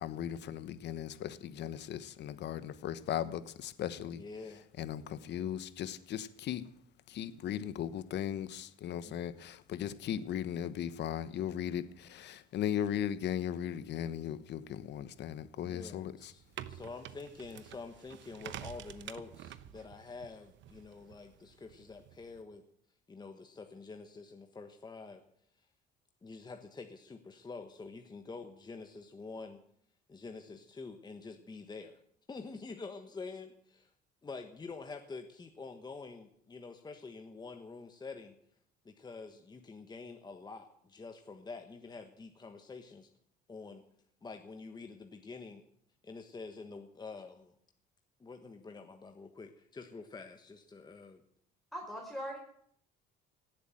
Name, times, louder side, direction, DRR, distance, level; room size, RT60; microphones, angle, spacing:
voice 1, 0.0-4.2 4.8-6.6 7.1-16.1, left 10 dB, 60° left, 14 dB, 1.1 m, -37 dB
voice 2, 4.1-4.7 9.0-9.2 15.6-22.6 23.1-25.2 25.5-25.7 26.2-29.6 30.1-32.0 32.3-33.9 34.2-38.4 38.8-43.1 43.5-43.8 44.2-45.6 46.0-47.5 48.2-51.2, left 4 dB, 20° left, 5 dB, 1.3 m, -47 dB
sound 1, 16.2-22.4, right 11 dB, 65° right, 1.0 m, -49 dB
voice 3, 51.7-52.4, equal, ahead, -1 dB, 4.4 m, -40 dB
17.5 x 8.3 x 9.2 m, 0.66 s
cardioid pair, 125°, 20 cm